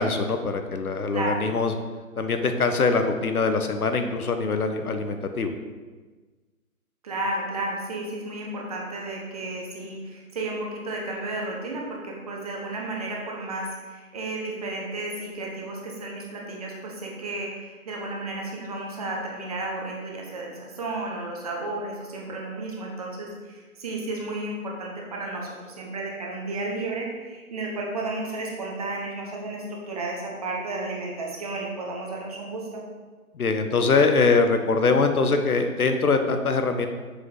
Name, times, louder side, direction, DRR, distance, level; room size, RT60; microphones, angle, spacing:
voice 1, 0.0-1.7 2.2-5.5 33.3-36.9, left 4 dB, 80° left, 7 dB, 0.9 m, -23 dB
voice 2, 7.0-32.8, right 2 dB, 25° right, -2 dB, 0.9 m, -33 dB
6.5 x 5.2 x 3.8 m, 1.3 s
figure-of-eight pair, 150°, 44 cm